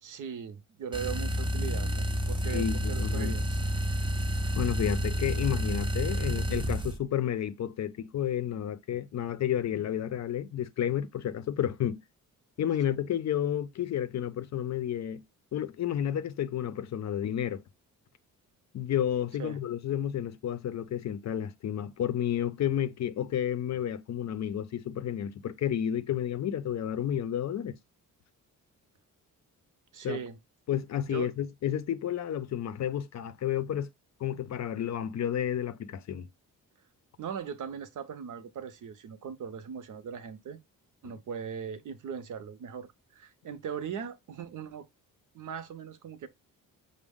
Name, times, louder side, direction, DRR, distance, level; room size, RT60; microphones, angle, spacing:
voice 1, 0.0-3.6 19.4-19.6 29.9-30.4 31.0-31.3 37.2-40.6 41.0-44.9 45.3-46.3, right 7 dB, 60° right, 0.7 m, -39 dB
sound 1, 0.9-7.0, equal, 15° right, 0.5 m, -30 dB
voice 2, 2.4-3.4 4.5-12.0 12.6-15.2 15.5-17.6 18.7-27.8 30.0-30.2 30.7-33.9 34.2-36.3, left 10 dB, 50° left, 0.5 m, -31 dB
6.1 x 2.1 x 3.5 m
cardioid pair, 115°, 34 cm